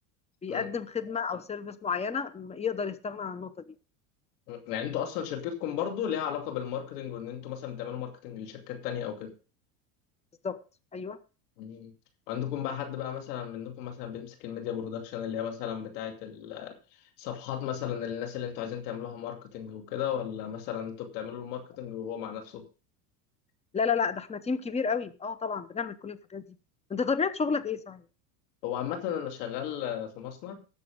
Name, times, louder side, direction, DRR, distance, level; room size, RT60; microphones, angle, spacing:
voice 1, 0.4-3.7 10.4-10.6 10.9-11.2 23.7-26.4 26.9-28.0, left 5 dB, 15° left, 13 dB, 0.8 m, -31 dB
voice 2, 4.5-9.3 11.6-11.9 12.3-16.7 17.2-22.6 28.6-30.6, left 9 dB, 75° left, 5 dB, 2.7 m, -35 dB
18.0 x 6.9 x 3.7 m, 0.33 s
supercardioid pair, 110°, 47 cm